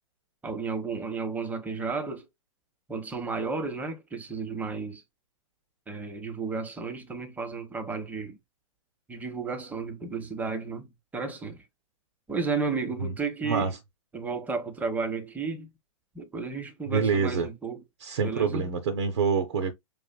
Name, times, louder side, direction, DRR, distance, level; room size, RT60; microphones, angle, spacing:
voice 1, 0.4-2.3 2.9-5.0 5.9-8.4 9.1-11.6 12.3-13.7 14.1-15.7 16.1-17.8 18.2-18.6, right 4 dB, 10° right, 0.8 m, -33 dB
voice 2, 16.9-17.5 18.0-19.7, right 5 dB, 50° right, 0.8 m, -26 dB
5.2 x 2.5 x 2.2 m
figure-of-eight pair, 105°, 18 cm